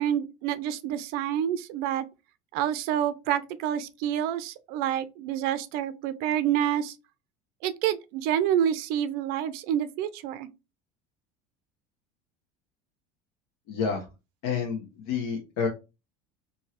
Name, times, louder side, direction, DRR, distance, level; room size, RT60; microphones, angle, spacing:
voice 1, 0.0-2.1 2.5-6.9 7.6-10.5, right 10 dB, 60° right, 0.4 m, -28 dB
voice 2, 13.7-14.1 14.4-15.7, left 6 dB, 75° left, 0.8 m, -29 dB
2.9 x 2.6 x 2.8 m
cardioid pair, 145°, 18 cm